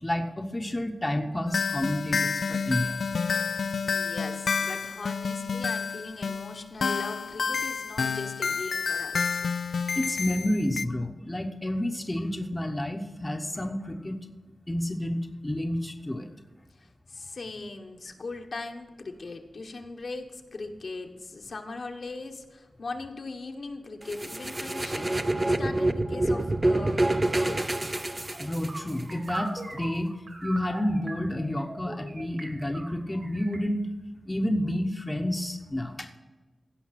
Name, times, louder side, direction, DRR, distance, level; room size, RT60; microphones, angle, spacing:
voice 1, 0.0-3.0 10.0-14.2 14.7-16.3 28.2-30.1 30.4-33.8 34.3-36.1, left 1 dB, 15° left, 4 dB, 0.9 m, -30 dB
sound 1, 1.5-10.9, left 5 dB, 80° left, 0.3 m, -29 dB
voice 2, 3.5-9.4 16.8-27.6, left 3 dB, 60° left, 3 dB, 1.2 m, -39 dB
sound 2, 24.1-29.0, right 2 dB, 25° right, 0.6 m, -27 dB
sound 3, 26.2-26.5 26.8-33.6, right 2 dB, 50° right, 2.1 m, -41 dB
16.0 x 5.8 x 5.9 m, 1.2 s
wide cardioid pair, 110°, 0 cm